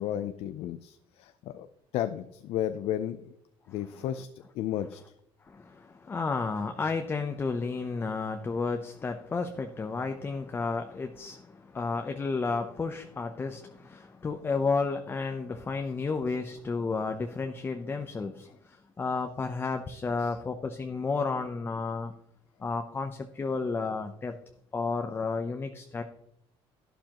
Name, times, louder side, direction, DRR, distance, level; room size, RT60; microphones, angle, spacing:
voice 1, 0.0-1.7 1.9-3.3 3.7-4.3 4.5-5.0 20.2-20.3, left 11 dB, 75° left, 10 dB, 0.6 m, -33 dB
voice 2, 5.5-22.1 22.6-24.4 24.7-26.0, left 4 dB, 20° left, 6 dB, 0.7 m, -32 dB
12.0 x 11.0 x 3.0 m, 0.77 s
cardioid pair, 135°, 10 cm